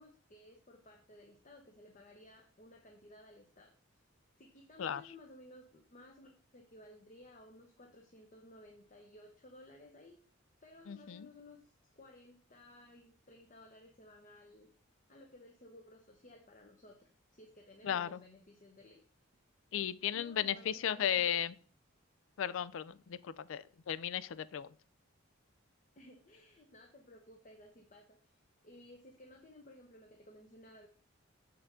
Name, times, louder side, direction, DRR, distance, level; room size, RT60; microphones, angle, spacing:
voice 1, 0.0-3.7 4.4-10.2 10.6-14.7 15.1-19.0 19.7-21.3 26.0-30.9, left 1 dB, 35° left, 2 dB, 0.8 m, -57 dB
voice 2, 10.9-11.3 17.8-18.2 19.7-21.5 22.4-24.7, left 9 dB, 65° left, 18 dB, 0.4 m, -35 dB
6.7 x 5.7 x 3.7 m, 0.42 s
head